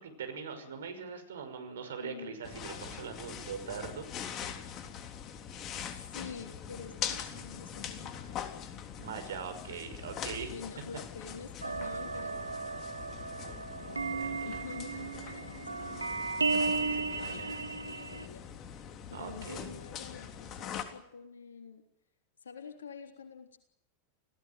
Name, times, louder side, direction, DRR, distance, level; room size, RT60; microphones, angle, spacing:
voice 1, 0.0-4.1 9.0-10.5 14.2-14.5 16.7-17.6 19.1-19.8, right 6 dB, 65° right, 8 dB, 5.8 m, -42 dB
voice 2, 1.9-2.4 5.8-8.6 10.5-21.8 22.4-23.6, left 5 dB, 70° left, 6 dB, 3.4 m, -48 dB
sound 1, 2.4-20.8, left 8 dB, 35° left, 3.5 m, -43 dB
sound 2, 11.6-18.3, right 4 dB, 80° right, 1.8 m, -35 dB
28.5 x 17.5 x 9.2 m, 0.76 s
figure-of-eight pair, 90°, 0 cm